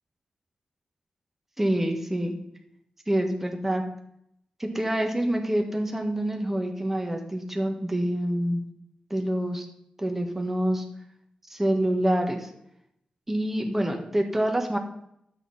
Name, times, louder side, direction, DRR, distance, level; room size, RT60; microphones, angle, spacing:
voice 1, 1.6-2.3 3.1-3.8 4.6-8.6 9.1-9.7 10.0-10.8 11.5-12.5 13.3-14.8, right 1 dB, 10° right, 3 dB, 1.5 m, -26 dB
12.5 x 8.4 x 4.2 m, 0.76 s
wide cardioid pair, 170°, 2 cm